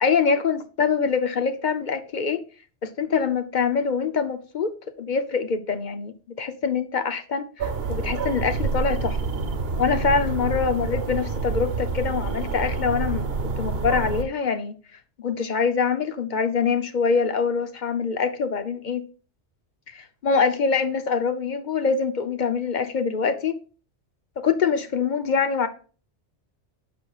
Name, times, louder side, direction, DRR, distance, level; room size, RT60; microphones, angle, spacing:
voice 1, 0.0-2.4 2.8-4.7 5.0-9.2 9.8-14.7 15.2-19.0 19.9-23.6 24.4-25.7, left 5 dB, 50° left, 0.7 m, -24 dB
sound 1, 7.6-14.2, right 4 dB, 60° right, 1.1 m, -27 dB
8.4 x 6.0 x 2.4 m
omnidirectional pair, 1.2 m